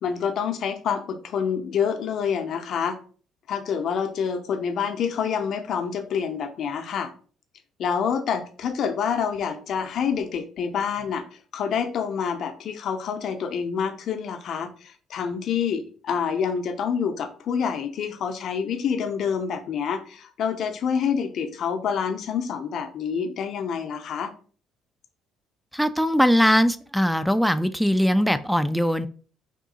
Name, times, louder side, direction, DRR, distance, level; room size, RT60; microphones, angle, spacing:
voice 1, 0.0-3.0 3.5-7.1 7.8-11.2 11.5-24.3, left 7 dB, 60° left, 6 dB, 0.6 m, -27 dB
voice 2, 25.7-29.1, equal, ahead, 12 dB, 0.4 m, -21 dB
3.6 x 2.7 x 3.9 m, 0.41 s
hypercardioid pair, 55°, 0 cm